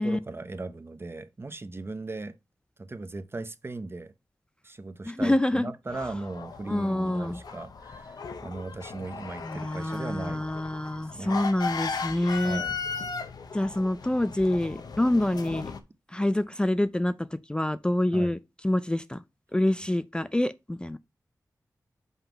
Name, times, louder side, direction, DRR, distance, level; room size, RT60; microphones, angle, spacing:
voice 1, 0.0-2.4 2.8-4.1 4.6-10.4 11.1-11.4 12.4-12.8 18.1-18.4, right 3 dB, 35° right, 0.8 m, -38 dB
voice 2, 5.0-5.7 6.7-7.4 9.4-12.6 13.5-15.7 16.1-18.4 18.6-19.2 19.5-21.0, left 1 dB, 15° left, 0.4 m, -26 dB
sound 1, 5.9-15.8, left 5 dB, 85° left, 0.8 m, -37 dB
5.6 x 3.7 x 5.8 m
cardioid pair, 55°, 7 cm